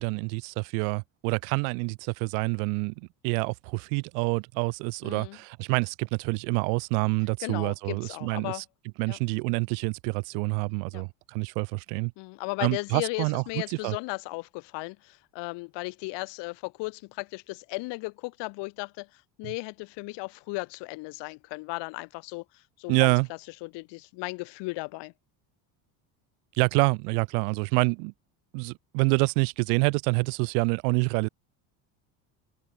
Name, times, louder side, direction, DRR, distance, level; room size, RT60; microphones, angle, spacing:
voice 1, 0.0-8.6 9.0-12.1 12.6-14.0 22.9-23.3 26.5-28.1 28.5-31.3, right 40 dB or more, 80° right, 0.6 m, -27 dB
voice 2, 5.0-5.4 7.4-8.6 9.1-9.2 10.9-11.0 12.2-23.1 23.6-25.1, left 25 dB, 65° left, 1.1 m, -36 dB
supercardioid pair, 110°, 45 cm